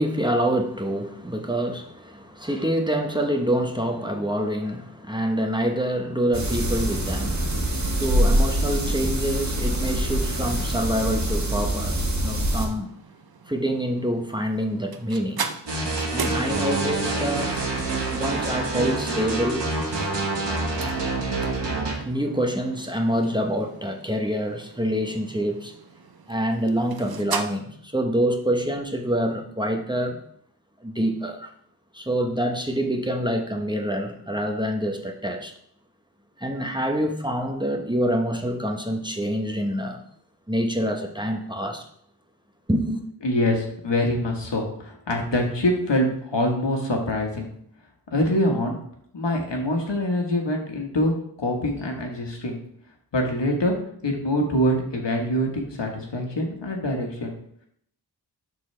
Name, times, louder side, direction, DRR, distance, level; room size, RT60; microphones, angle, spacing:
voice 1, 0.0-7.7 8.0-12.9 13.5-15.5 16.1-17.6 18.1-19.7 22.0-25.7 26.3-30.2 30.8-31.5 31.9-35.5 36.4-40.0 40.5-41.8 42.7-43.0, equal, 10° right, 3 dB, 0.9 m, -26 dB
sound 1, 6.3-12.7, right 1 dB, 40° right, 1.5 m, -24 dB
sound 2, 12.4-27.4, right 5 dB, 60° right, 0.7 m, -38 dB
sound 3, 15.7-21.9, right 2 dB, 85° right, 1.6 m, -27 dB
voice 2, 43.2-47.5 48.1-48.8 49.1-52.6 53.1-53.7 54.0-57.3, left 1 dB, 85° left, 2 dB, 1.4 m, -24 dB
11.5 x 4.0 x 3.3 m, 0.67 s
wide cardioid pair, 55°, 42 cm